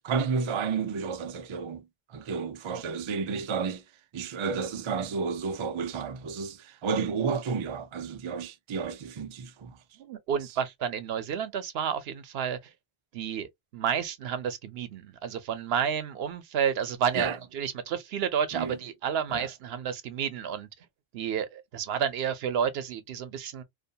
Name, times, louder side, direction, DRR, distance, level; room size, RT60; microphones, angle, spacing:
voice 1, 0.0-3.8 4.1-9.8 17.1-17.4 18.5-18.8 19.3-19.5, right 5 dB, 55° right, 0.3 m, -31 dB
voice 2, 10.0-12.6 13.1-20.7 21.1-23.6, right 8 dB, 75° right, 0.8 m, -31 dB
2.5 x 2.1 x 2.7 m
omnidirectional pair, 1.0 m